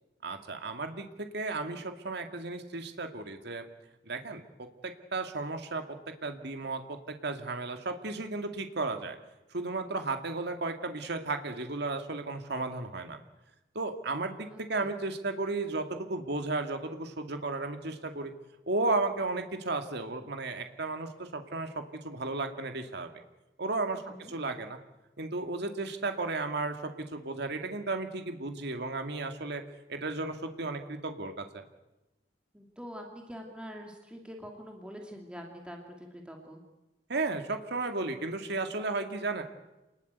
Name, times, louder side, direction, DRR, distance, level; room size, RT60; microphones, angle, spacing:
voice 1, 0.2-3.6 4.1-5.8 6.2-9.2 9.5-13.2 13.7-18.3 18.7-21.7 22.0-23.1 23.6-24.0 24.3-24.8 25.2-29.6 29.9-31.6 37.1-39.4, right 3 dB, 65° right, 6 dB, 2.3 m, -34 dB
voice 2, 23.9-24.3 32.5-36.6, equal, 5° right, 1 dB, 2.7 m, -45 dB
28.0 x 20.0 x 8.2 m, 1.0 s
head